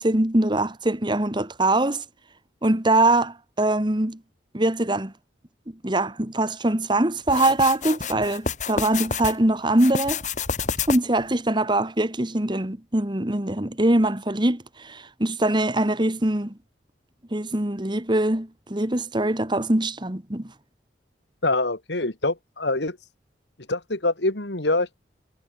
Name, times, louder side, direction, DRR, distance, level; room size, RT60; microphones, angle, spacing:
voice 1, 0.0-2.0 2.6-4.2 4.5-5.1 5.8-10.2 10.9-16.5 17.3-20.5, right 1 dB, 25° right, 1.7 m, -23 dB
sound 1, 7.3-9.4 9.8-11.2, left 5 dB, 40° left, 2.2 m, -29 dB
voice 2, 21.4-23.0 23.7-25.0, left 2 dB, 70° left, 2.7 m, -25 dB
head